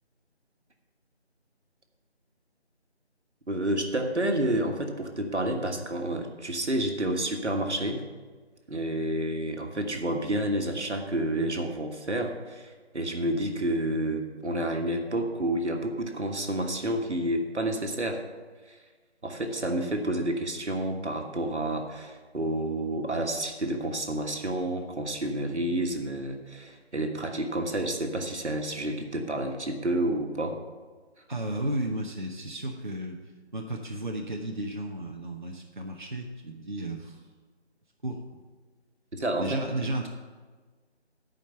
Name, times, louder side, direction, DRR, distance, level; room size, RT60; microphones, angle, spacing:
voice 1, 3.5-8.0 8.7-18.2 18.7-18.8 19.2-30.6 39.1-39.6, right 1 dB, 80° right, 3 dB, 1.5 m, -29 dB
voice 2, 31.3-33.2 33.5-37.2 38.0-38.2 39.4-40.1, right 1 dB, 45° right, 1 dB, 0.8 m, -33 dB
10.5 x 5.2 x 6.7 m, 1.4 s
figure-of-eight pair, 180°, 34 cm